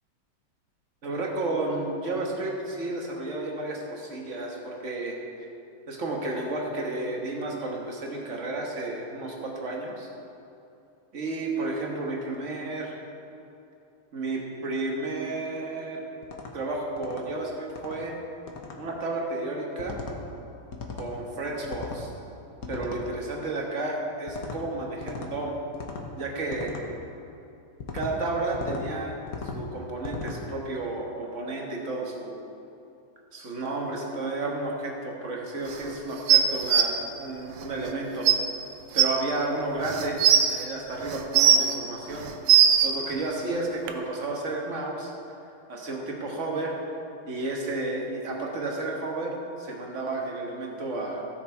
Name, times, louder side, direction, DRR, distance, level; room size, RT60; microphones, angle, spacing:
voice 1, 1.0-5.2 5.9-10.1 11.1-13.0 14.1-16.1 16.5-18.1 18.8-20.0 20.9-22.1 22.7-25.5 26.2-26.7 27.9-29.2 29.5-32.4 33.3-38.3 38.9-40.2 40.4-42.3 42.8-45.1 45.7-46.8 47.3-51.2, right 2 dB, 40° right, -1 dB, 1.5 m, -32 dB
sound 1, 16.2-16.5 17.0-17.2 17.7-18.0 18.5-18.8 19.8-20.2 20.7-21.1 21.6-22.0 22.6-23.0 24.3-24.6 25.0-25.3 25.7-26.1 26.5-26.8 27.8-28.1 28.5-28.8 29.3-29.6 30.0-30.4, left 4 dB, 50° left, 1.2 m, -37 dB
sound 2, 36.3-36.8 37.9-38.0 38.2-38.3 39.0-39.1 39.8-40.5 41.1-41.7 42.2-42.9 43.9-44.0, right 9 dB, 80° right, 1.6 m, -18 dB
15.5 x 6.7 x 4.6 m, 2.7 s
omnidirectional pair, 2.4 m